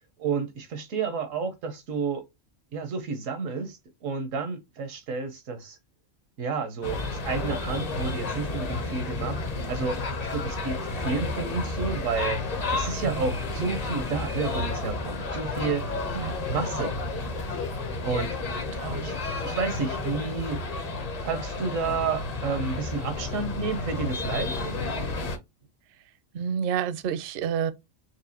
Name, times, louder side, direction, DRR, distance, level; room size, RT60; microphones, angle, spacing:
voice 1, 0.2-2.2 2.7-5.8 6.4-9.4 9.7-12.5 12.7-15.9 16.5-16.9 18.0-18.4 19.0-19.2 19.4-20.6 21.2-24.6, right 5 dB, 90° right, 1.2 m, -30 dB
sound 1, 6.8-25.4, left 3 dB, 40° left, 0.6 m, -31 dB
voice 2, 18.8-19.1 26.3-27.7, right 8 dB, 60° right, 0.6 m, -29 dB
4.6 x 2.6 x 2.7 m
omnidirectional pair, 1.3 m